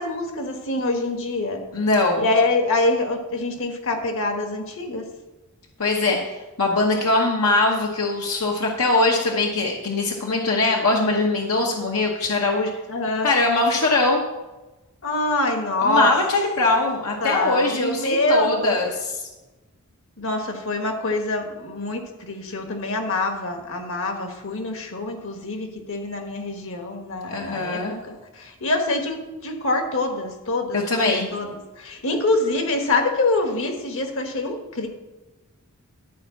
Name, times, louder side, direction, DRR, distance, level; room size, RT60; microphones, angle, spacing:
voice 1, 0.0-1.6 2.2-5.1 12.9-13.3 15.0-16.1 17.2-18.8 20.2-34.9, left 2 dB, 60° left, 4 dB, 1.5 m, -25 dB
voice 2, 1.7-2.3 5.8-12.7 13.2-14.2 15.8-19.2 27.3-28.0 30.7-31.3, left 2 dB, 75° left, -1 dB, 1.1 m, -21 dB
12.0 x 4.7 x 7.1 m, 1.1 s
head